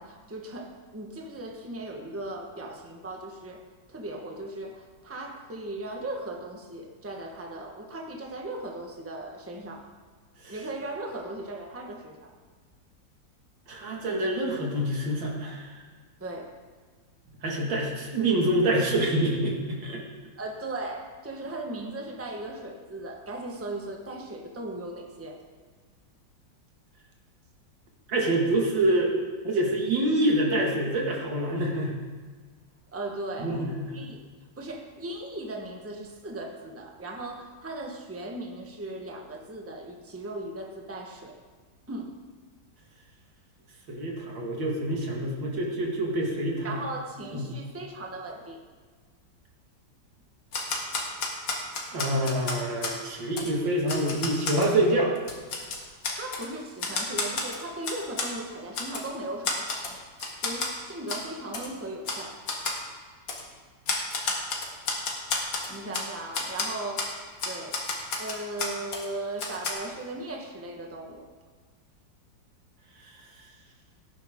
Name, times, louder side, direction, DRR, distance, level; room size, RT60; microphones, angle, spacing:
voice 1, 0.0-3.6 3.9-9.9 10.5-12.3 16.2-16.5 20.4-25.4 32.9-33.6 33.9-34.2 34.6-41.4 41.9-42.1 46.6-48.6 55.8-60.0 60.4-62.4 65.7-67.8 68.2-71.2, right 2 dB, 10° right, 1 dB, 1.1 m, -37 dB
voice 2, 13.7-15.8 17.4-20.0 28.1-29.1 29.4-32.0 33.4-33.9 43.9-46.8 47.3-47.4 51.9-55.1 73.0-73.1, right 1 dB, 85° right, -1 dB, 2.7 m, -26 dB
Typewriter, 50.5-53.0 53.4-53.5 53.9-54.7 55.2-56.5 56.8-58.3 58.7-59.1 59.4-59.9 60.2-60.7 61.1-61.2 61.5-61.7 62.0-62.2 62.5-62.8 63.3-63.4 63.9-66.1 66.3-66.7 67.0-67.1 67.4-69.1 69.4-69.7, left 3 dB, 85° left, 2.4 m, -31 dB
17.5 x 10.5 x 3.7 m, 1.5 s
omnidirectional pair, 2.0 m